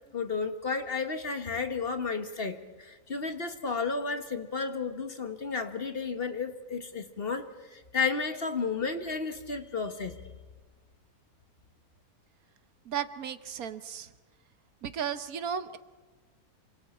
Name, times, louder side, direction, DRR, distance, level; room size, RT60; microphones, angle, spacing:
voice 1, 0.1-10.2, left 4 dB, 40° left, 8 dB, 1.4 m, -32 dB
voice 2, 12.8-14.1 14.8-15.8, right 8 dB, 70° right, 12 dB, 1.4 m, -34 dB
27.0 x 25.5 x 4.4 m, 1.3 s
omnidirectional pair, 1.6 m